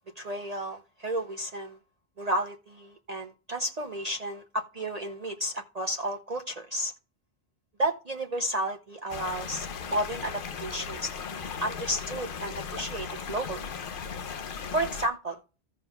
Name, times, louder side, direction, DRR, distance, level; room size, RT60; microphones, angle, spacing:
voice 1, 0.2-1.8 2.2-6.9 7.8-13.7 14.7-15.4, right 1 dB, 40° right, 0.8 m, -32 dB
sound 1, 9.1-15.1, left 6 dB, 55° left, 0.8 m, -37 dB
16.0 x 5.5 x 2.3 m
omnidirectional pair, 1.1 m